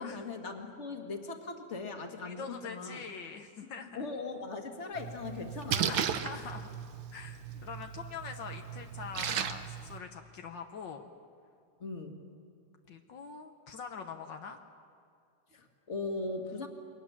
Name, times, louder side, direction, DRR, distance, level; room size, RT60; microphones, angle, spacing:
voice 1, 0.0-3.0 3.9-6.0 6.3-6.5 11.8-12.2 15.5-16.7, left 3 dB, 25° left, 4 dB, 1.8 m, -39 dB
voice 2, 2.3-4.0 5.9-6.8 7.1-11.1 12.9-14.6, left 5 dB, 75° left, 5 dB, 1.0 m, -44 dB
Splash splatter, 5.0-10.0, right 8 dB, 90° right, 1.0 m, -36 dB
28.5 x 22.5 x 7.3 m, 2.4 s
omnidirectional pair, 3.5 m